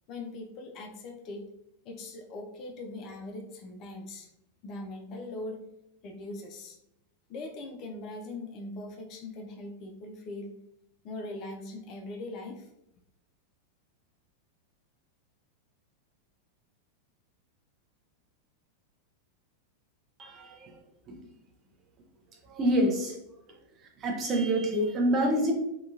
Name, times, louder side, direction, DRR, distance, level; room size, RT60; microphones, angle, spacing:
voice 1, 0.1-1.5 1.8-4.3 4.6-5.6 6.0-6.8 7.3-10.5 11.0-12.7, left 2 dB, 35° left, 3 dB, 0.4 m, -41 dB
voice 2, 20.2-20.7 21.1-21.3 22.5-23.2 24.0-25.5, right 1 dB, 30° right, 1 dB, 0.6 m, -27 dB
2.8 x 2.3 x 2.4 m, 0.82 s
figure-of-eight pair, 90°, 0 cm